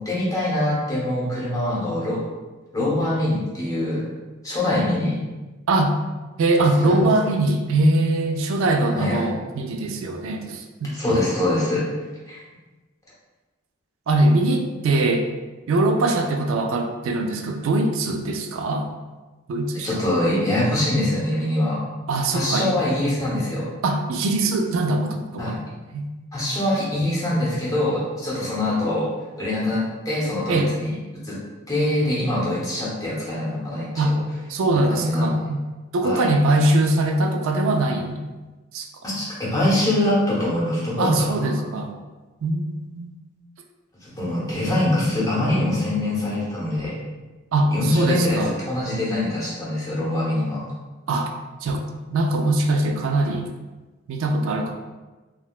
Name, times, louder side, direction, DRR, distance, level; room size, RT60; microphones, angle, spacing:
voice 1, 0.0-2.2 2.7-4.0 4.4-5.2 6.8-7.1 8.9-9.4 10.9-11.9 12.3-12.4 19.8-21.8 22.3-23.7 25.4-25.6 26.3-29.1 29.4-31.0 31.2-31.4 31.7-34.2 34.7-35.3 36.0-36.3 39.0-41.5 44.0-47.0 47.7-50.7, left 1 dB, 15° left, -8 dB, 0.8 m, -24 dB
voice 2, 6.4-11.0 14.1-15.3 15.7-18.9 19.5-20.0 22.1-22.8 23.8-25.6 25.9-26.1 30.5-30.7 34.0-34.2 34.5-35.6 35.9-38.2 38.7-38.9 41.0-42.0 42.4-43.1 47.5-48.5 51.1-51.3 51.6-51.8 52.1-53.5 54.1-54.7, right 2 dB, 75° right, 3 dB, 0.3 m, -22 dB
3.7 x 2.2 x 2.3 m, 1.2 s
head